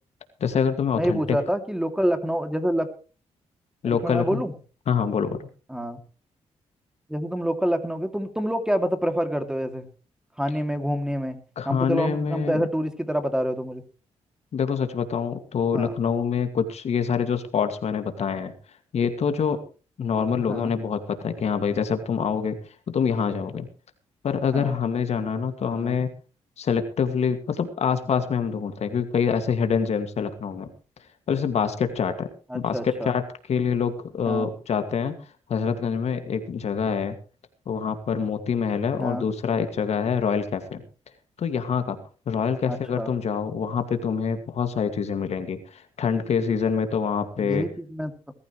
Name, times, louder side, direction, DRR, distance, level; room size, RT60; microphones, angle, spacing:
voice 1, 0.4-1.4 3.8-4.4 4.9-5.4 11.6-12.6 14.5-18.5 18.9-19.6 20.0-22.6 22.9-23.7 24.2-26.1 26.6-30.7 31.3-32.3 32.5-32.8 33.0-33.2 33.5-35.2 35.5-37.1 37.7-40.8 41.4-42.0 42.3-47.7, left 6 dB, 65° left, 8 dB, 2.2 m, -25 dB
voice 2, 1.0-2.9 3.8-4.5 5.7-6.0 7.1-9.9 10.4-11.4 11.6-13.8 15.7-15.9 20.5-20.7 24.5-24.8 25.7-26.0 32.5-33.1 34.3-34.5 39.0-39.2 42.7-43.1 47.4-48.1, equal, 5° right, 7 dB, 2.7 m, -27 dB
20.5 x 14.0 x 3.2 m, 0.36 s
cardioid pair, 75°, 12 cm